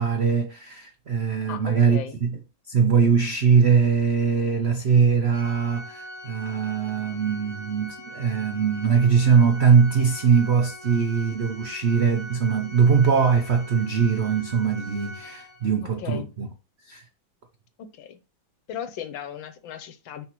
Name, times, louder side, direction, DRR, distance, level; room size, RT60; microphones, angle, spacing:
voice 1, 0.0-2.4 2.7-16.5 16.8-17.0, right 6 dB, 85° right, 0.5 m, -21 dB
voice 2, 1.5-2.2 16.0-16.3 17.9-18.2 18.7-20.3, left 9 dB, 75° left, 1.6 m, -36 dB
Organ, 5.3-15.9, right 1 dB, 20° right, 1.9 m, -42 dB
9.8 x 3.8 x 3.0 m
omnidirectional pair, 2.1 m